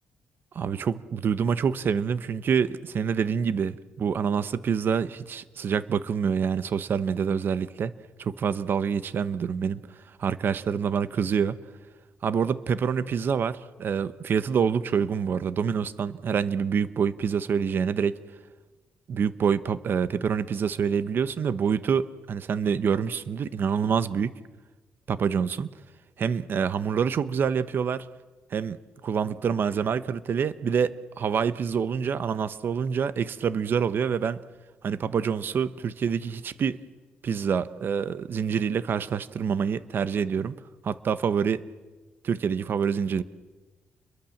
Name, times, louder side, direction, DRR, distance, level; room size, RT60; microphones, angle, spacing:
voice 1, 0.5-7.9 8.2-9.8 10.2-11.6 12.2-18.2 19.1-24.3 25.1-25.7 26.2-28.1 28.5-28.8 29.0-34.4 34.8-36.8 37.2-40.5 40.8-41.6 42.2-43.2, right 7 dB, 55° right, 14 dB, 1.1 m, -26 dB
29.5 x 22.5 x 7.3 m, 1.2 s
cardioid pair, 110°, 4 cm